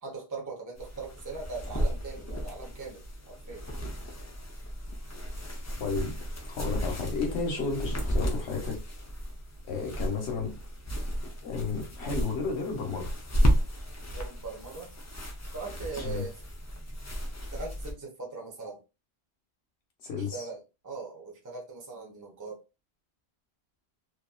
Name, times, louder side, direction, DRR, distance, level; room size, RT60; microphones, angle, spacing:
voice 1, 0.0-3.6 14.1-14.9 15.5-16.4 17.5-18.8 20.2-22.6, right 4 dB, 20° right, 0.7 m, -40 dB
sound 1, 0.8-17.9, equal, 30° left, 0.3 m, -33 dB
voice 2, 5.8-6.1 6.5-8.8 9.6-10.5 11.4-13.1 16.0-16.2 20.0-20.4, left 4 dB, 90° left, 1.2 m, -32 dB
2.8 x 2.4 x 2.2 m
omnidirectional pair, 1.1 m